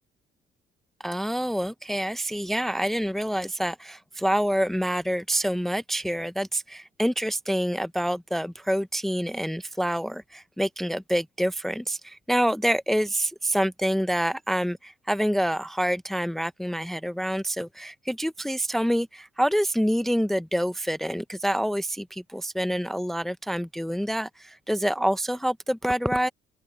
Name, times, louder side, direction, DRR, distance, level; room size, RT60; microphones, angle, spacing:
voice 1, 1.0-26.3, equal, ahead, 0.5 m, -27 dB
open air
cardioid pair, 110°, 17 cm